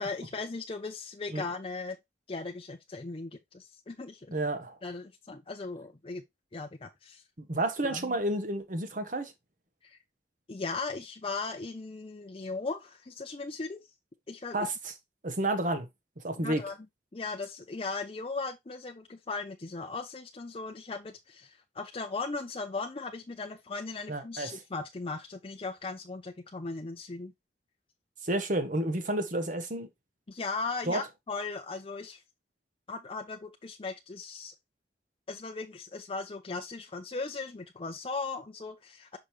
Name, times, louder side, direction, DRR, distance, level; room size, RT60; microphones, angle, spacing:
voice 1, 0.0-2.0 2.3-4.4 4.8-6.2 6.5-7.2 7.8-8.2 9.8-10.0 10.5-13.8 14.3-14.7 16.4-16.8 17.1-27.3 30.3-32.2 32.9-34.5 35.3-39.2, left 3 dB, 30° left, 0.6 m, -38 dB
voice 2, 4.3-4.8 7.4-9.3 14.5-14.9 15.2-15.9 16.2-16.6 24.1-24.6 28.2-29.9 30.9-31.0, right 1 dB, 50° right, 1.2 m, -31 dB
5.8 x 5.1 x 3.2 m
head